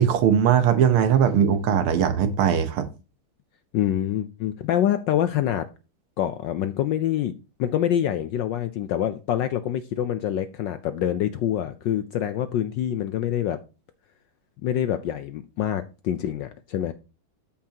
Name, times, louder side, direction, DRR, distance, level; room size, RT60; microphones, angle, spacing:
voice 1, 0.0-2.9, right 8 dB, 80° right, 1.8 m, -20 dB
voice 2, 3.7-5.7 6.2-7.3 7.6-13.6 14.6-16.9, left 11 dB, 75° left, 1.1 m, -26 dB
13.0 x 5.7 x 2.8 m
omnidirectional pair, 2.4 m